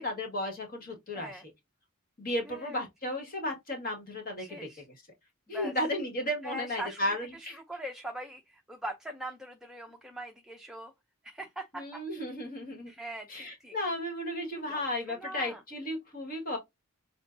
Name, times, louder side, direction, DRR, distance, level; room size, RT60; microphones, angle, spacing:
voice 1, 0.0-1.3 2.2-4.6 5.5-7.6 11.7-12.9 13.3-16.6, left 1 dB, 40° left, 1.8 m, -34 dB
voice 2, 2.5-3.1 4.4-4.9 5.5-5.7 6.4-10.9 11.2-12.0 12.9-13.8 14.5-15.6, right 1 dB, 5° right, 0.6 m, -42 dB
7.3 x 2.6 x 2.7 m
head